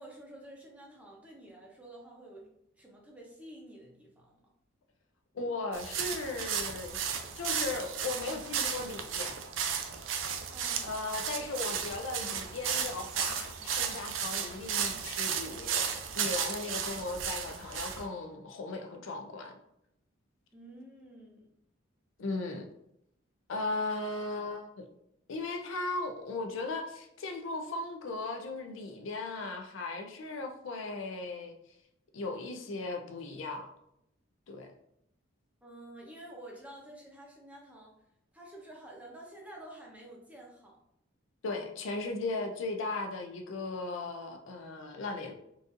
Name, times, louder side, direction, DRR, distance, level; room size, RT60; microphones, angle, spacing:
voice 1, 0.0-4.4 10.5-11.1 20.5-21.5 35.6-37.9 38.3-40.8, right 1 dB, 5° right, -2 dB, 0.6 m, -50 dB
voice 2, 5.3-7.0 7.4-9.4 10.8-19.6 22.2-22.7 23.5-24.9 25.3-31.5 32.1-33.7 34.5-34.7 41.4-45.3, left 3 dB, 70° left, 4 dB, 0.4 m, -37 dB
sound 1, 5.7-18.0, right 7 dB, 70° right, 0.4 m, -34 dB
3.9 x 2.4 x 2.5 m, 0.78 s
head